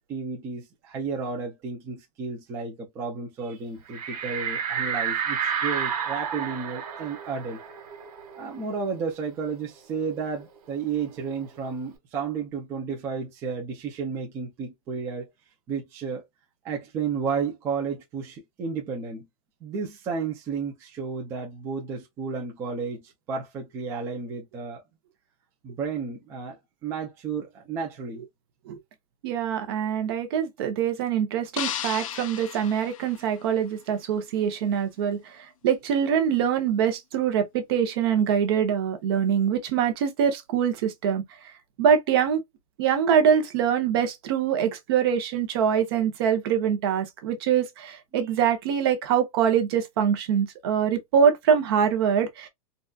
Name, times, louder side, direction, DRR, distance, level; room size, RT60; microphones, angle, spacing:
voice 1, 0.0-7.6 8.3-15.3 15.7-16.2 16.6-19.3 19.6-24.8 25.6-28.3, right 5 dB, 15° right, 0.5 m, -32 dB
sound 1, 3.9-9.1 9.5-9.6 9.9-11.5, right 7 dB, 75° right, 1.5 m, -31 dB
voice 2, 29.2-41.2 41.8-42.4 42.8-52.5, right 8 dB, 40° right, 0.7 m, -24 dB
sound 2, 31.6-33.8, left 10 dB, 60° left, 0.5 m, -35 dB
3.9 x 2.3 x 2.3 m
supercardioid pair, 175°, 19 cm